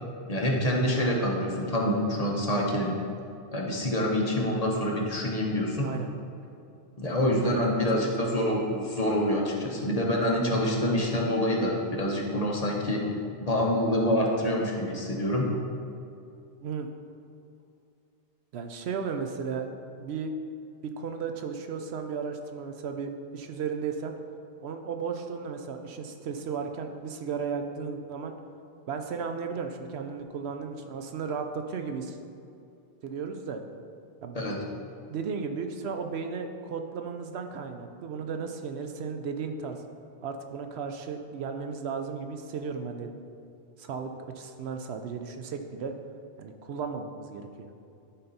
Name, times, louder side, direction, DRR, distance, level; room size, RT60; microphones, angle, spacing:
voice 1, 0.3-2.9 3.5-5.9 7.0-13.0 13.4-15.5 34.3-34.6, left 1 dB, 35° left, -2 dB, 1.0 m, -26 dB
voice 2, 7.9-8.3 16.6-16.9 18.5-19.7 20.0-20.3 20.8-24.1 24.6-28.3 28.9-32.2 33.0-33.6 34.2-34.5 35.1-39.8 40.2-43.2 43.8-45.9 46.4-47.7, right 5 dB, 70° right, 5 dB, 0.8 m, -35 dB
11.5 x 4.2 x 4.0 m, 2.6 s
omnidirectional pair, 1.1 m